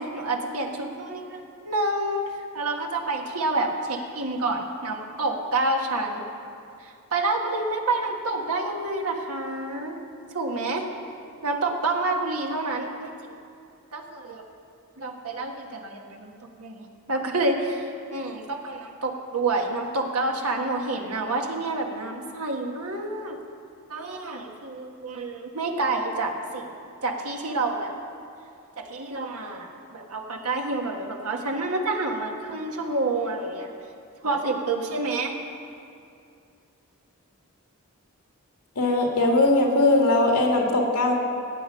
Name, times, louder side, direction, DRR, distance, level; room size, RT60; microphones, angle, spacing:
voice 1, 0.0-6.2 6.8-10.0 10.3-10.9 11.4-13.4 13.9-14.4 15.0-16.3 16.6-23.4 23.9-26.7 27.0-27.9 28.8-33.7 34.2-35.3, right 2 dB, 80° right, 2 dB, 1.6 m, -28 dB
voice 2, 38.8-41.1, left 2 dB, 85° left, 0 dB, 2.2 m, -20 dB
17.0 x 8.9 x 5.6 m, 2.5 s
head